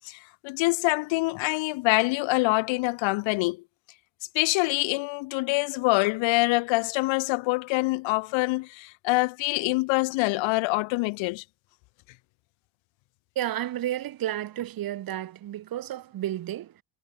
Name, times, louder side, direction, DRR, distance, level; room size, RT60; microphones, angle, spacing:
voice 1, 0.0-3.6 4.3-11.4, left 24 dB, 70° left, 0.5 m, -25 dB
voice 2, 13.4-16.8, right 12 dB, 45° right, 0.9 m, -32 dB
supercardioid pair, 85°, 48 cm